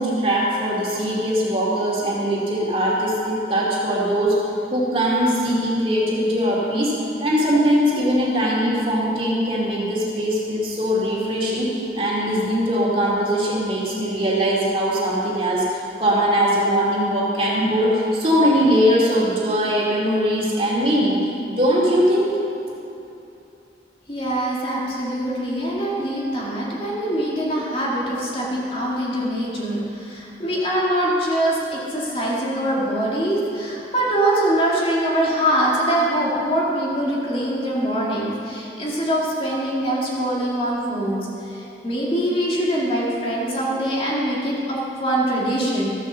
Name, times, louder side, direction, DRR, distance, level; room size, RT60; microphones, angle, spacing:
voice 1, 0.0-21.2 21.5-22.3, equal, 30° right, -5 dB, 2.3 m, -21 dB
voice 2, 24.1-45.9, right 1 dB, 30° left, -5 dB, 2.2 m, -23 dB
14.0 x 7.4 x 6.9 m, 2.8 s
head